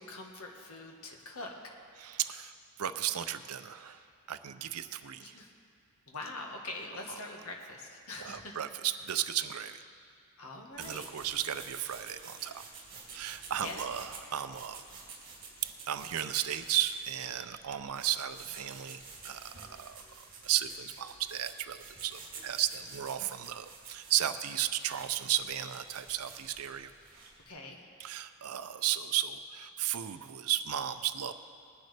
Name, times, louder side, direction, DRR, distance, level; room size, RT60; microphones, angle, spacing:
voice 1, 0.0-1.8 5.2-5.5 6.1-8.6 10.4-11.1 13.6-13.9 27.5-27.9, left 2 dB, 75° left, 1 dB, 1.5 m, -43 dB
voice 2, 2.0-5.4 8.2-9.8 10.8-12.6 13.1-14.8 15.9-20.0 20.4-26.9 28.0-31.3, right 11 dB, 85° right, 11 dB, 0.5 m, -34 dB
sound 1, 10.7-27.5, right 4 dB, 40° right, 2.5 m, -50 dB
20.0 x 10.5 x 3.4 m, 2.4 s
head